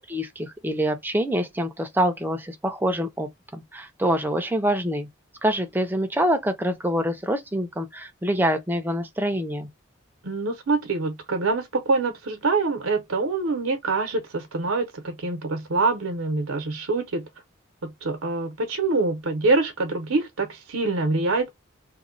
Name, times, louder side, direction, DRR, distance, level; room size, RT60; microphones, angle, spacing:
voice 1, 0.1-5.1 5.4-9.7, equal, 10° right, 0.5 m, -25 dB
voice 2, 10.2-17.2 17.8-21.5, right 3 dB, 85° right, 0.7 m, -25 dB
3.0 x 2.1 x 3.8 m
head